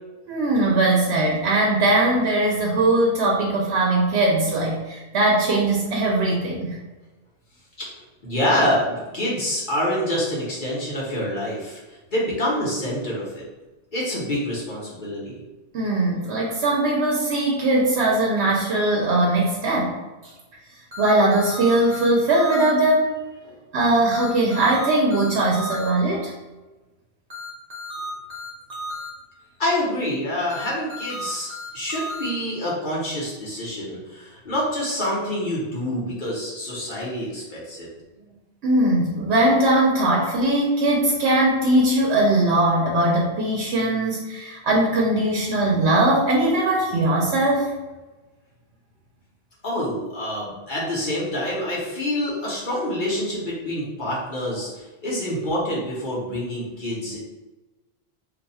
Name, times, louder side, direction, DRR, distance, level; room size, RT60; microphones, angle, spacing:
voice 1, 0.3-6.7 15.7-19.9 21.0-23.1 23.7-26.3 38.6-47.7, right 1 dB, 85° right, -3 dB, 0.9 m, -20 dB
voice 2, 8.2-11.8 12.1-13.4 13.9-15.4 23.4-23.5 29.6-37.9 49.6-57.2, left 1 dB, 50° left, -6 dB, 1.1 m, -26 dB
sound 1, 20.9-22.7 24.1-25.9 27.3-29.1 30.5-32.3, equal, 40° right, 0.8 m, -34 dB
2.6 x 2.3 x 4.1 m, 1.2 s
omnidirectional pair, 1.1 m